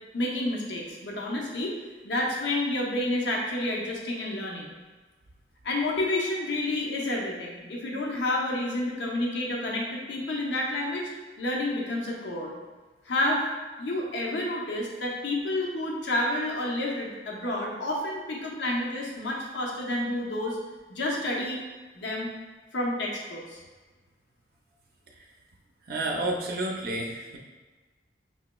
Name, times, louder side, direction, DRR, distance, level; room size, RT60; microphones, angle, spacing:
voice 1, 0.1-1.7 2.0-4.7 5.6-11.1 11.4-12.5 13.1-13.4 13.8-20.6 20.9-21.6 21.9-22.3 22.7-23.6, left 1 dB, 90° left, -2 dB, 0.7 m, -29 dB
voice 2, 25.9-27.4, right 1 dB, 60° right, 0 dB, 0.5 m, -30 dB
5.5 x 2.9 x 2.2 m, 1.3 s
head